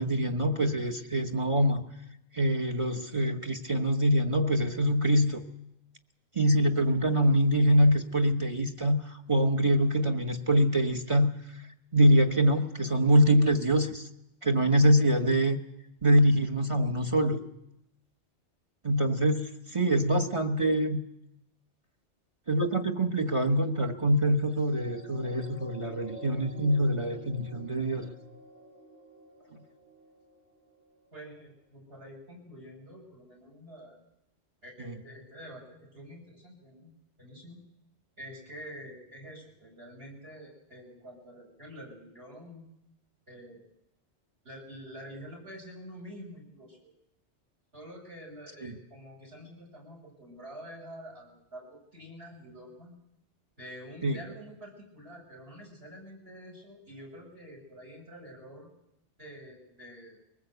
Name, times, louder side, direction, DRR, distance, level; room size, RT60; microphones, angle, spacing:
voice 1, 0.0-1.9 2.3-5.4 6.3-11.3 11.9-14.1 14.4-15.6 16.0-17.4 18.8-21.0 22.5-28.1 34.8-34.9 48.6-48.7 54.0-54.2, equal, 30° right, 6 dB, 1.2 m, -24 dB
sound 1, 24.5-31.2 31.8-31.9, equal, 80° right, 8.6 m, -51 dB
voice 2, 31.1-34.0 34.6-37.6 38.2-42.7 43.3-43.7 44.4-46.9 47.7-52.9 53.6-58.7 59.2-60.2, equal, 60° right, 1 dB, 6.1 m, -47 dB
22.5 x 19.5 x 8.0 m, 0.86 s
omnidirectional pair, 1.2 m